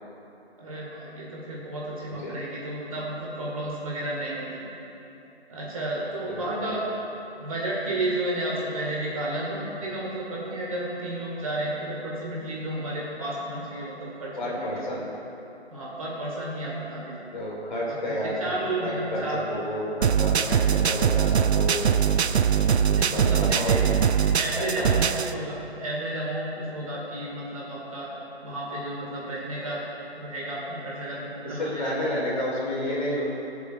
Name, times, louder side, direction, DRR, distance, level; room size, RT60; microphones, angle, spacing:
voice 1, 0.6-4.6 5.5-6.8 7.4-14.9 15.7-17.2 18.1-19.4 22.9-23.8 24.3-28.1 28.4-29.8 30.2-32.1, right 1 dB, 30° right, -5 dB, 1.8 m, -32 dB
voice 2, 2.1-2.4 6.3-6.8 14.4-15.1 17.3-22.0 22.9-23.9 24.5-25.2 31.4-33.2, left 1 dB, 45° left, -4 dB, 2.3 m, -31 dB
sound 1, 20.0-25.3, right 7 dB, 80° right, 0.5 m, -22 dB
20.5 x 7.1 x 2.5 m, 3.0 s
figure-of-eight pair, 160°, 33 cm